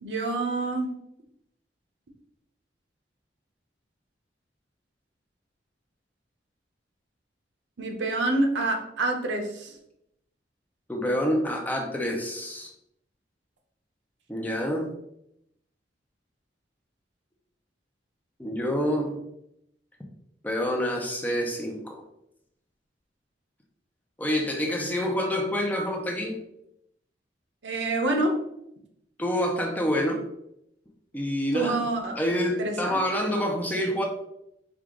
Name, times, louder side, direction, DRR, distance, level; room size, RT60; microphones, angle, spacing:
voice 1, 0.0-0.9 7.8-9.7 27.6-28.4 31.5-32.2 32.6-33.0, right 2 dB, 85° right, 3 dB, 0.8 m, -27 dB
voice 2, 10.9-12.7 14.3-14.9 18.4-19.2 20.4-22.0 24.2-26.4 29.2-30.2 31.1-31.9 32.2-34.0, equal, 10° left, 1 dB, 0.6 m, -27 dB
4.6 x 2.4 x 3.7 m, 0.78 s
head